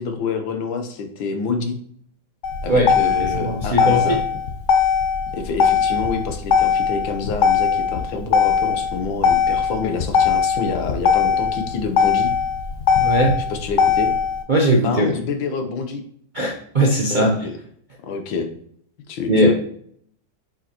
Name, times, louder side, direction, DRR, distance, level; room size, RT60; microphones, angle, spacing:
voice 1, 0.0-1.8 2.6-4.2 5.3-12.3 13.5-14.1 14.7-16.0 17.1-17.5 18.0-18.5 19.1-19.5, left 4 dB, 85° left, 6 dB, 1.7 m, -27 dB
Motor vehicle (road), 2.4-14.4, left 6 dB, 55° left, 0.9 m, -19 dB
voice 2, 2.7-4.2 13.0-13.4 14.5-15.1 16.3-17.3 19.3-19.5, right 1 dB, 50° right, -2 dB, 0.5 m, -19 dB
7.6 x 4.9 x 3.0 m, 0.63 s
omnidirectional pair, 2.1 m